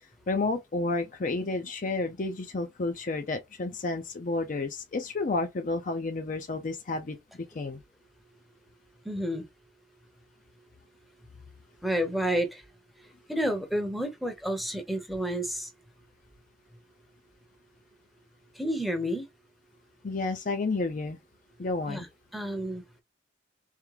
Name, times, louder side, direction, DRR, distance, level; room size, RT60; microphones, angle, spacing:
voice 1, 0.3-7.8 20.0-21.2 21.6-22.1, left 3 dB, 45° left, 0.5 m, -31 dB
voice 2, 9.0-9.4 11.8-12.6 13.3-15.7 18.5-19.2 21.9-22.1 22.3-22.8, equal, ahead, 0.7 m, -30 dB
3.6 x 3.2 x 3.2 m
head